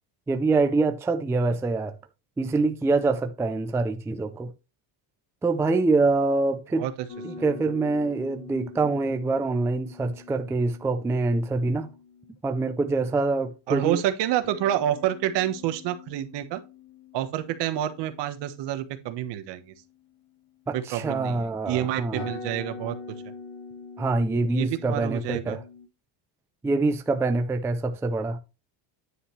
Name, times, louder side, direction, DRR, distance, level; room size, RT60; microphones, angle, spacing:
voice 1, 0.3-2.0 2.4-4.5 5.4-6.9 7.2-11.9 12.4-14.0 20.7-22.3 24.0-25.6 26.6-28.4, right 3 dB, 5° right, 0.4 m, -25 dB
sound 1, 7.1-12.4 14.4-21.0 21.8-21.9 22.2-25.9, left 3 dB, 65° left, 2.4 m, -44 dB
voice 2, 13.7-16.6 17.1-19.7 20.7-23.0 24.5-25.6, right 12 dB, 65° right, 1.3 m, -28 dB
9.7 x 5.5 x 3.2 m
cardioid pair, 175°, 45 cm